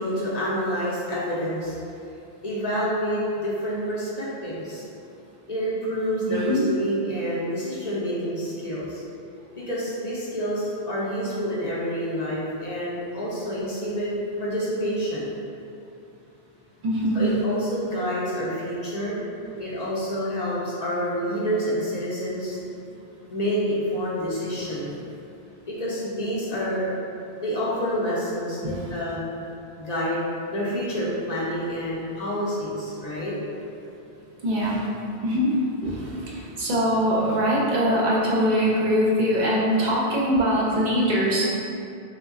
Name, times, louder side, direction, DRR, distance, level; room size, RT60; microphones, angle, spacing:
voice 1, 0.0-1.8 2.4-4.8 5.5-9.0 9.6-14.1 14.4-15.3 17.1-19.2 19.6-22.6 23.3-25.0 25.7-26.9 27.4-29.3 29.8-33.3, equal, 50° left, -7 dB, 0.6 m, -28 dB
voice 2, 6.3-6.6 16.8-17.3 24.5-24.8 28.6-28.9 34.4-41.4, equal, 55° right, -5 dB, 0.6 m, -23 dB
3.1 x 2.2 x 3.5 m, 2.6 s
omnidirectional pair, 1.1 m